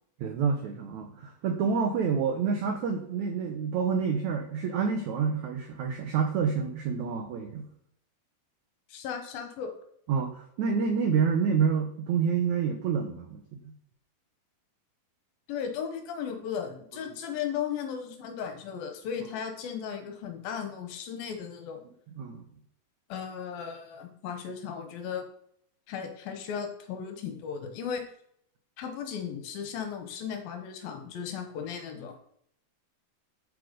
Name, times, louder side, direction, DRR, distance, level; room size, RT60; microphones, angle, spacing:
voice 1, 0.2-7.7 10.1-13.7 22.2-22.4, right 6 dB, 80° right, 5 dB, 1.7 m, -28 dB
voice 2, 8.9-9.7 15.5-21.8 23.1-25.2 25.9-28.0 28.8-32.2, left 7 dB, 70° left, 6 dB, 2.8 m, -36 dB
9.7 x 7.9 x 5.2 m, 0.69 s
omnidirectional pair, 4.7 m